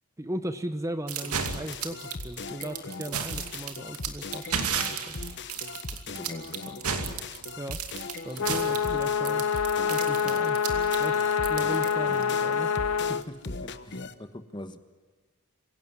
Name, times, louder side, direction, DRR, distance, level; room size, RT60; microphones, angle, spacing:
voice 1, 0.2-5.1 7.6-7.8 8.2-9.5 9.9-10.6 11.0-12.7, right 1 dB, 15° right, 9 dB, 0.9 m, -37 dB
sound 1, 1.1-12.3, right 7 dB, 90° right, 2.6 m, -33 dB
sound 2, 1.2-14.1, left 3 dB, 50° left, 1.1 m, -40 dB
voice 2, 5.9-6.8 8.3-8.6 13.1-14.8, left 1 dB, 20° left, 9 dB, 1.3 m, -43 dB
sound 3, 8.4-13.2, left 7 dB, 80° left, 0.8 m, -26 dB
25.5 x 16.5 x 9.5 m, 1.4 s
head